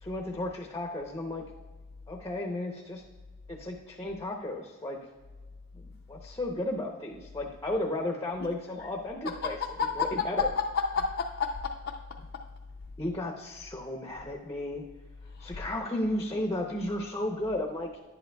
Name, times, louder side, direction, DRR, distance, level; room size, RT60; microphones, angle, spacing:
voice 1, 0.0-1.4 2.1-3.0 3.5-5.0 5.7-9.6 10.0-10.4 13.0-14.8 15.4-18.0, left 1 dB, 15° left, 1 dB, 0.7 m, -34 dB
voice 2, 8.4-8.9 9.2-12.5 15.3-15.6, left 5 dB, 55° left, 1 dB, 0.5 m, -32 dB
11.0 x 10.5 x 2.3 m, 1.3 s
head